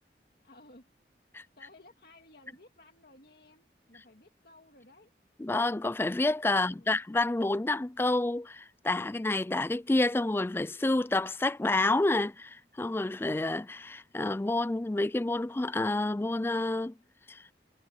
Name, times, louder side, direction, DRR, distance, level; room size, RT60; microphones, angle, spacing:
voice 1, 0.4-0.9 1.6-5.1, left 2 dB, 55° left, 2.3 m, -57 dB
voice 2, 5.4-16.9 17.3-17.5, left 2 dB, 15° left, 0.3 m, -29 dB
head